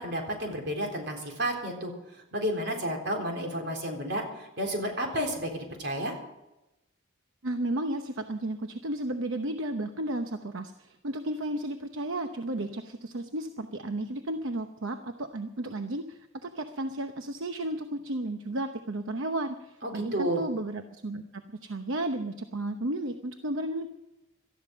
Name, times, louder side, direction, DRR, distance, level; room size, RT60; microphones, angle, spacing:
voice 1, 0.0-1.9 2.3-6.1 19.8-20.4, equal, 55° right, 2 dB, 3.8 m, -31 dB
voice 2, 7.4-23.9, right 1 dB, 75° right, 7 dB, 0.9 m, -33 dB
18.5 x 13.5 x 5.3 m, 0.96 s
head